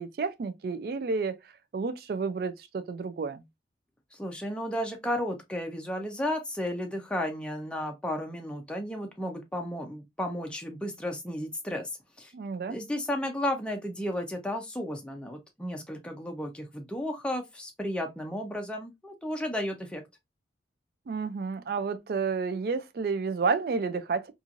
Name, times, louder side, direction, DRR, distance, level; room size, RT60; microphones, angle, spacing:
voice 1, 0.0-1.4 1.7-3.4 12.3-12.8 21.1-24.3, right 4 dB, 55° right, 0.3 m, -30 dB
voice 2, 4.1-11.9 12.2-12.3 12.7-20.0, left 1 dB, 5° left, 0.5 m, -33 dB
3.0 x 2.4 x 2.4 m
head